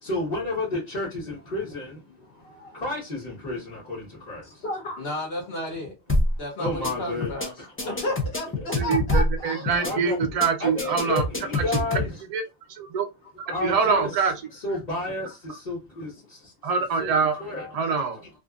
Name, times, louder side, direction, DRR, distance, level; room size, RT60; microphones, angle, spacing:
voice 1, 0.0-2.3 2.7-4.6 6.6-8.1 8.6-8.7 9.8-10.2 10.6-12.2 13.5-16.5 17.0-17.8 18.1-18.3, left 2 dB, 40° left, 1.2 m, -32 dB
voice 2, 2.3-2.8 4.4-5.9 6.4-7.5 7.8-10.0 13.7-14.1 14.7-14.8, left 1 dB, 65° left, 1.0 m, -33 dB
sound 1, 6.1-6.4 6.7-6.9 7.2-7.5 7.8-9.4 9.7-9.9 10.2-10.5 10.8-12.1, left 2 dB, 20° left, 0.3 m, -25 dB
voice 3, 8.8-11.2 12.3-12.4 12.8-13.1 13.6-14.3 16.6-17.3 17.7-18.2, right 5 dB, 50° right, 0.4 m, -24 dB
2.5 x 2.5 x 2.4 m
omnidirectional pair, 1.1 m